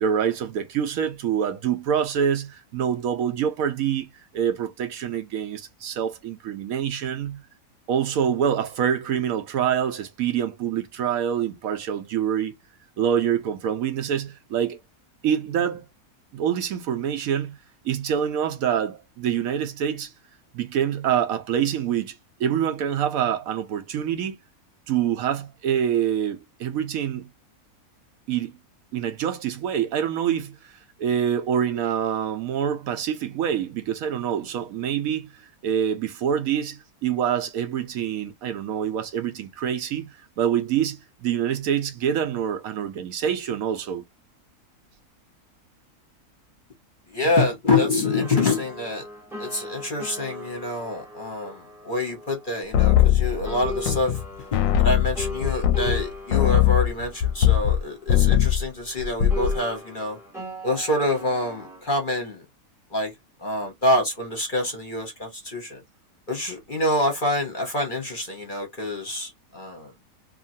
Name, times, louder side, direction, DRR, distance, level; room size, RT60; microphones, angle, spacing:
voice 1, 0.0-4.1 4.3-7.4 7.9-12.5 13.0-14.8 15.2-15.8 16.3-17.6 17.8-20.1 20.5-24.4 24.9-27.3 28.3-28.5 28.9-30.7 31.0-44.0, right 9 dB, 70° right, 1.0 m, -26 dB
voice 2, 47.1-49.0 49.4-54.2 54.5-60.2 60.6-62.4 62.9-63.1 63.4-65.8 66.3-69.9, left 2 dB, 40° left, 0.8 m, -26 dB
sound 1, 48.0-53.2 53.4-58.9 59.3-61.8, left 1 dB, ahead, 0.7 m, -39 dB
sound 2, 52.7-54.2 54.5-57.8 58.1-58.6 59.0-59.6, left 11 dB, 70° left, 0.9 m, -20 dB
2.8 x 2.5 x 2.6 m
omnidirectional pair, 1.6 m